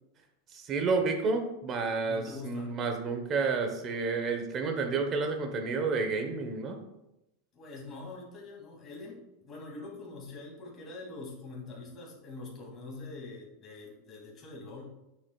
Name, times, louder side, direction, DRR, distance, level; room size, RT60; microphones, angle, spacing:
voice 1, 0.5-6.8, right 4 dB, 30° right, 5 dB, 1.1 m, -30 dB
voice 2, 2.0-2.7 7.5-14.9, left 3 dB, 30° left, -2 dB, 2.6 m, -44 dB
8.0 x 6.9 x 2.4 m, 0.91 s
supercardioid pair, 145°, 0 cm